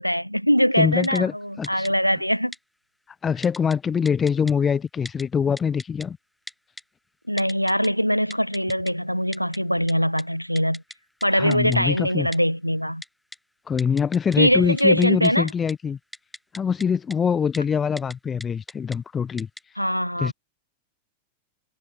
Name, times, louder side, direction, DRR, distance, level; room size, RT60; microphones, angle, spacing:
voice 1, 0.0-2.5 7.3-10.8 11.2-13.0 14.4-15.5 19.8-20.3, equal, 90° left, 0.8 m, -22 dB
voice 2, 0.8-1.9 3.2-6.2 11.3-12.3 13.7-16.0 16.5-19.5 20.2-20.3, left 6 dB, 20° left, 0.7 m, -24 dB
Typing, 1.0-1.2 1.6-1.9 2.5-2.6 3.4-3.8 4.1-4.5 5.1-5.2 5.6-6.1 6.5-6.8 7.4-7.9 8.3-8.9 9.3-9.6 9.9-10.0 10.2-10.3 10.6-11.0 11.2-11.3 11.5-11.8 12.3-12.4 13.0-13.4 13.8-14.4 14.7-15.7 16.1-16.9 17.1-17.2 17.5-17.6 18.0-18.1 18.4-19.0 19.4-19.6, left 1 dB, 5° left, 3.9 m, -39 dB
figure-of-eight pair, 90°, 0 cm